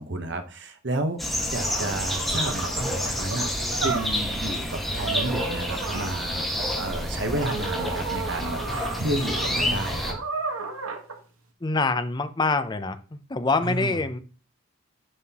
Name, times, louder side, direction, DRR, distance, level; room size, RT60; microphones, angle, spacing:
voice 1, 0.0-10.1 13.6-14.0, right 1 dB, 55° right, 6 dB, 1.0 m, -31 dB
sound 1, 1.2-10.1, left 1 dB, ahead, 1.5 m, -29 dB
sound 2, 1.6-4.4 4.9-6.2 7.4-11.2, right 4 dB, 85° right, 1.2 m, -33 dB
voice 2, 11.6-14.2, left 3 dB, 20° left, 10 dB, 0.5 m, -25 dB
9.6 x 5.6 x 2.9 m, 0.37 s
head